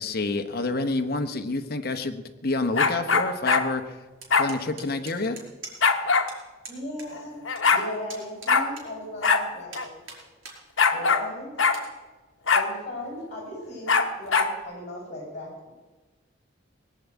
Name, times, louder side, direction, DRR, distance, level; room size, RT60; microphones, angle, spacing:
voice 1, 0.0-4.0 4.3-5.4, left 3 dB, 50° left, 8 dB, 1.0 m, -28 dB
sound 1, 2.7-3.7 4.3-4.5 5.8-6.3 7.2-7.3 7.4-7.8 8.5-8.7 9.2-9.4 9.7-9.8 10.8-11.3 11.6-11.8 12.5-12.7 13.9-14.5, left 5 dB, 70° left, 1.2 m, -21 dB
sound 2, 4.2-6.0 6.3-6.4 6.6-7.1 7.3-9.3 9.7-10.6 11.0-11.1 11.6-11.9, right 4 dB, 80° right, 5.0 m, -43 dB
voice 2, 6.7-7.4 7.7-9.9 10.9-11.5 12.5-15.7, left 1 dB, 35° left, -1 dB, 6.8 m, -37 dB
19.5 x 8.4 x 8.3 m, 1.3 s
head